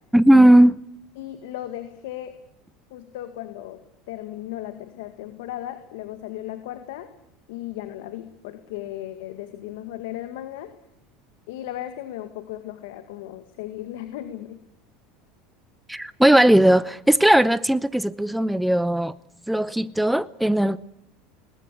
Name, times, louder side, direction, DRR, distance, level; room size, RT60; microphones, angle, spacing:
voice 1, 0.1-0.7 15.9-19.1 19.5-20.8, right 1 dB, 5° right, 0.8 m, -17 dB
voice 2, 1.2-2.3 2.9-3.8 4.1-7.1 7.5-10.7 11.5-14.6, left 13 dB, 75° left, 2.1 m, -36 dB
21.0 x 20.0 x 8.6 m
hypercardioid pair, 95°, 0 cm